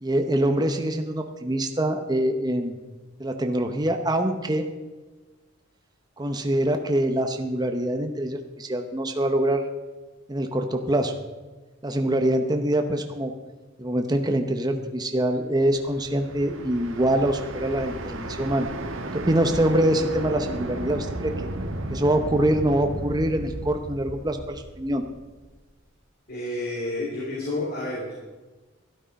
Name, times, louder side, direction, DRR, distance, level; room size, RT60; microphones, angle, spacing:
voice 1, 0.0-2.7 3.2-4.7 6.2-9.6 10.3-11.2 11.8-13.3 13.8-18.7 19.1-21.3 21.9-25.0, right 1 dB, 20° right, 5 dB, 0.8 m, -24 dB
sound 1, 15.6-25.6, right 1 dB, 80° right, 1.4 m, -34 dB
voice 2, 26.3-28.1, left 2 dB, 50° left, -5 dB, 2.8 m, -30 dB
12.5 x 12.0 x 5.3 m, 1.2 s
head